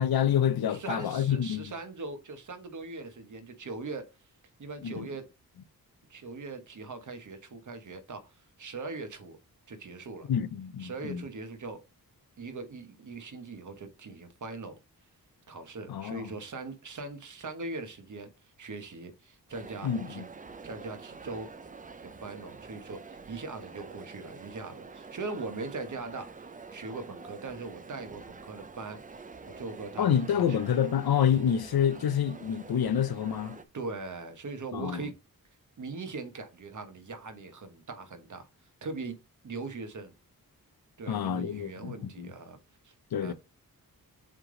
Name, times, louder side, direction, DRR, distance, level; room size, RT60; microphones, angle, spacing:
voice 1, 0.0-1.6 4.8-5.1 10.3-11.2 15.9-16.3 19.8-20.2 30.0-33.6 34.7-35.0 41.1-42.3 43.1-43.3, left 9 dB, 85° left, 0.7 m, -28 dB
voice 2, 0.7-4.1 4.6-5.2 6.1-9.4 9.7-10.3 10.8-11.8 12.4-14.8 15.5-18.3 18.6-20.2 20.6-21.5 22.0-29.2 29.6-30.6 33.7-35.1 35.8-38.5 38.8-39.2 39.4-40.1 41.0-42.6 42.8-43.3, right 3 dB, 55° right, 1.3 m, -40 dB
sound 1, 19.5-33.6, right 4 dB, 25° right, 0.4 m, -47 dB
7.4 x 3.4 x 3.8 m
wide cardioid pair, 175°, 36 cm